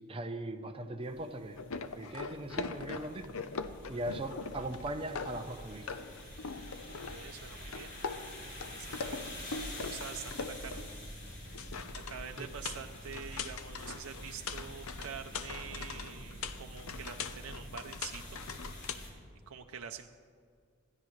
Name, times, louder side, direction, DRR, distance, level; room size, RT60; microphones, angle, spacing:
voice 1, 0.1-1.6 1.9-3.3 3.9-5.9 12.4-12.5, right 1 dB, 25° right, 5 dB, 0.7 m, -39 dB
sound 1, 1.0-19.1, equal, 60° left, 3.8 m, -47 dB
sound 2, 1.6-5.6 5.9-7.4 7.7-11.0 11.3-18.9, left 4 dB, 75° left, 0.7 m, -42 dB
voice 2, 7.1-8.0 8.3-10.9 11.5-18.4 19.5-20.1, right 7 dB, 90° right, 4 dB, 0.6 m, -46 dB
20.5 x 13.5 x 3.3 m, 2.2 s
head